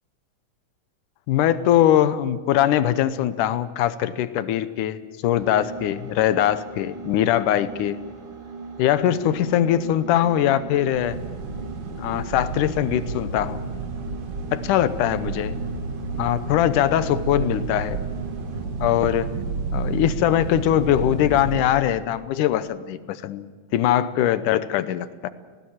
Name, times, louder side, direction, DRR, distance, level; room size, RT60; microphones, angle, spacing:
voice 1, 1.3-8.0 8.8-11.2 12.0-13.6 14.5-15.6 16.2-18.0 18.8-19.3 19.7-25.3, left 11 dB, 80° left, 13 dB, 2.4 m, -22 dB
sound 1, 5.3-18.8, right 6 dB, 60° right, 0.5 m, -39 dB
sound 2, 10.9-21.6, right 3 dB, 75° right, 3.3 m, -31 dB
19.5 x 17.5 x 8.7 m, 1.5 s
omnidirectional pair, 3.7 m